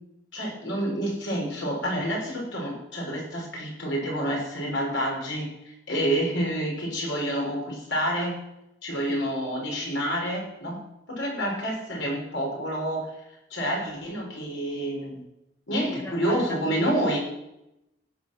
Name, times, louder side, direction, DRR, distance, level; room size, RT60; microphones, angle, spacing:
voice 1, 0.3-5.5 5.9-8.4 8.8-10.8 11.1-13.1 13.5-15.2 15.7-17.2, equal, 80° left, -1 dB, 6.4 m, -28 dB
voice 2, 15.8-17.2, equal, 15° left, 1 dB, 1.6 m, -38 dB
16.0 x 9.3 x 6.3 m, 0.86 s
head